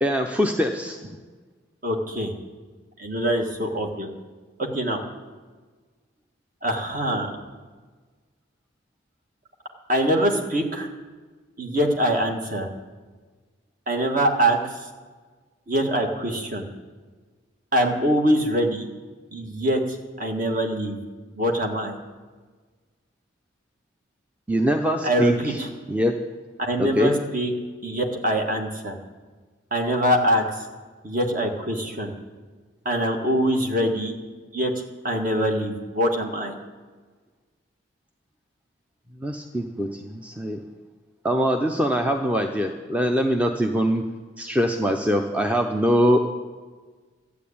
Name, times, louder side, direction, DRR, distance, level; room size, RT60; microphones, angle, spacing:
voice 1, 0.0-1.1 24.5-25.6 25.9-26.1 26.8-27.1 39.2-40.6 41.2-44.0 44.4-46.2, equal, 5° right, 4 dB, 0.6 m, -23 dB
voice 2, 1.8-2.3 3.0-4.1 4.6-5.0 6.6-7.3 9.9-10.9 11.6-12.7 13.9-14.8 15.7-16.6 17.7-18.9 19.3-21.0 21.4-22.0 25.0-25.7 26.6-27.5 27.8-29.0 29.7-30.4 31.0-32.1 32.9-34.2 34.5-34.7 35.0-36.5, right 1 dB, 45° right, 2 dB, 1.7 m, -23 dB
13.0 x 8.4 x 8.6 m, 1.4 s
head